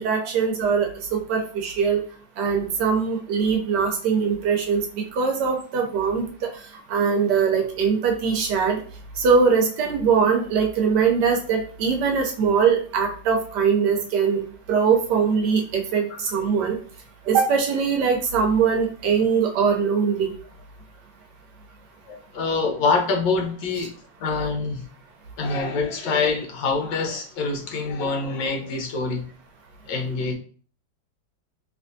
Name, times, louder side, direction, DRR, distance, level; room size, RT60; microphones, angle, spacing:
voice 1, 0.0-2.0 2.4-4.8 5.1-6.2 6.9-8.8 9.2-14.4 14.7-16.7 17.3-20.3, right 6 dB, 70° right, 2 dB, 1.1 m, -21 dB
voice 2, 22.1-23.9 24.2-24.9 25.4-29.2 29.9-30.3, left 4 dB, 75° left, 3 dB, 1.3 m, -25 dB
3.3 x 2.9 x 2.6 m, 0.44 s
omnidirectional pair, 2.0 m